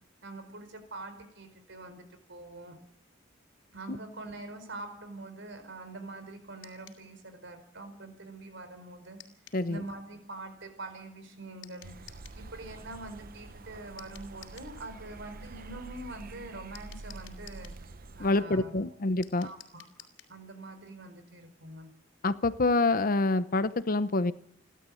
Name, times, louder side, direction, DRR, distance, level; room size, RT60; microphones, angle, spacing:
voice 1, 0.2-2.8 3.7-9.2 9.7-17.7 18.2-18.9 19.4-19.8 20.3-21.9, right 2 dB, 65° right, 8 dB, 4.7 m, -44 dB
sound 1, 6.6-7.0 9.2-9.6 11.6-12.4 14.0-14.7 16.7-17.8 19.2-20.4, left 10 dB, 80° left, 3.2 m, -52 dB
voice 2, 9.5-9.8 18.2-19.5 22.2-24.3, left 2 dB, 45° left, 14 dB, 0.8 m, -26 dB
sound 2, 11.8-18.4, right 3 dB, 45° right, 0.8 m, -47 dB
29.0 x 12.0 x 8.6 m, 0.74 s
head